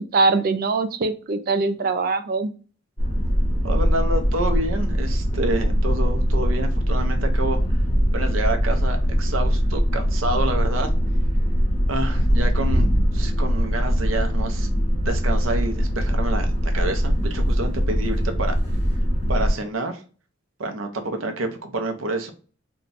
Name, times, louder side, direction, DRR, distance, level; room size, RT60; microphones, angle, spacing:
voice 1, 0.1-2.5, right 3 dB, 50° right, 9 dB, 0.4 m, -22 dB
sound 1, 3.0-19.5, equal, 35° left, 1.2 m, -21 dB
voice 2, 3.6-7.6 8.1-10.9 11.9-18.5 19.3-20.0 20.6-22.3, right 2 dB, 80° right, 5 dB, 0.7 m, -28 dB
2.8 x 2.2 x 4.0 m, 0.38 s
head